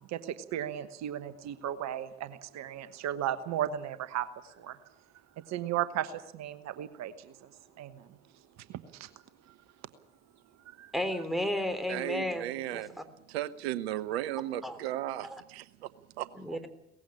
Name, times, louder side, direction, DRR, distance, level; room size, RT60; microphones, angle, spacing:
voice 1, 0.0-4.8 5.4-7.3 7.8-8.1 8.7-9.1 10.7-10.9, right 11 dB, 60° right, 13 dB, 1.2 m, -35 dB
voice 2, 10.9-12.8 14.6-14.8 15.3-15.4 16.3-16.7, left 1 dB, ahead, 9 dB, 3.5 m, -33 dB
voice 3, 11.9-13.0 13.3-15.9 16.2-16.6, right 13 dB, 80° right, 16 dB, 0.7 m, -35 dB
18.5 x 15.0 x 9.9 m, 0.83 s
hypercardioid pair, 55°, 31 cm